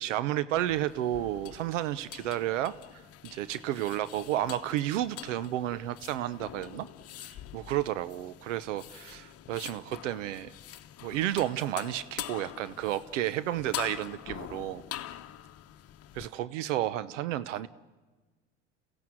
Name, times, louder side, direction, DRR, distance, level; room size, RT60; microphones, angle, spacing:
voice 1, 0.0-2.7 3.2-6.9 7.2-10.5 11.0-14.8 16.1-17.7, right 13 dB, 80° right, 16 dB, 0.8 m, -32 dB
sound 1, 0.6-16.3, left 12 dB, 40° left, 1.1 m, -45 dB
29.5 x 16.0 x 7.7 m, 1.3 s
hypercardioid pair, 80°, 37 cm